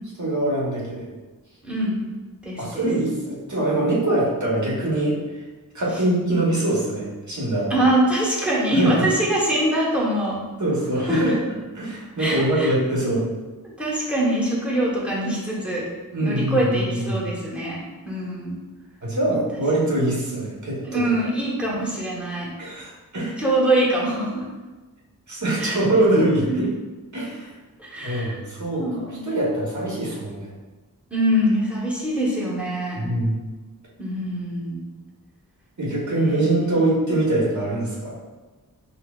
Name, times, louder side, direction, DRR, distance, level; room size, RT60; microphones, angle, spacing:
voice 1, 0.2-1.1 2.6-5.4 5.7-7.9 8.7-9.0 10.6-11.3 11.7-13.2 16.1-17.2 19.0-21.0 22.6-23.4 25.3-26.6 27.1-27.5 28.0-30.5 32.9-33.4 35.8-38.2, right 1 dB, 55° right, -5 dB, 1.1 m, -23 dB
voice 2, 1.6-2.0 2.4-2.9 7.7-10.4 11.1-11.2 12.2-12.7 13.8-15.9 16.2-17.8 18.0-18.6 20.8-22.5 23.4-24.4 25.6-25.8 26.1-26.2 26.5-26.6 27.8-28.4 28.8-29.4 31.1-33.0 34.0-34.9 36.2-36.7, right 1 dB, 5° right, -7 dB, 1.1 m, -23 dB
5.6 x 2.0 x 2.4 m, 1.2 s
wide cardioid pair, 65°, 36 cm